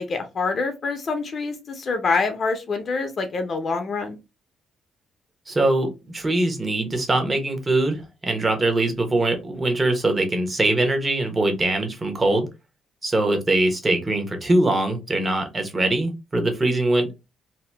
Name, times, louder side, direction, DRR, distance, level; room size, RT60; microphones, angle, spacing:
voice 1, 0.0-4.2, left 4 dB, 50° left, 6 dB, 0.6 m, -26 dB
voice 2, 5.5-12.5 13.0-17.2, right 2 dB, 25° right, 5 dB, 0.9 m, -22 dB
2.8 x 2.1 x 3.3 m, 0.26 s
cardioid pair, 90°, 0 cm